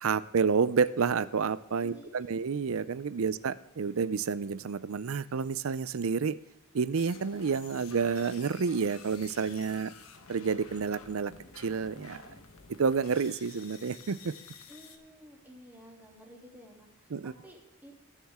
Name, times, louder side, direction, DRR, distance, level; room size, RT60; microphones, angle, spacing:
voice 1, 0.0-6.4 6.7-9.9 10.3-12.2 12.7-14.3 17.1-17.3, right 5 dB, 70° right, 16 dB, 0.5 m, -29 dB
voice 2, 1.8-2.5 14.7-18.0, equal, 10° right, -2 dB, 3.0 m, -53 dB
sound 1, 6.9-15.0, left 5 dB, 75° left, 1.3 m, -51 dB
20.0 x 7.3 x 3.6 m, 0.93 s
head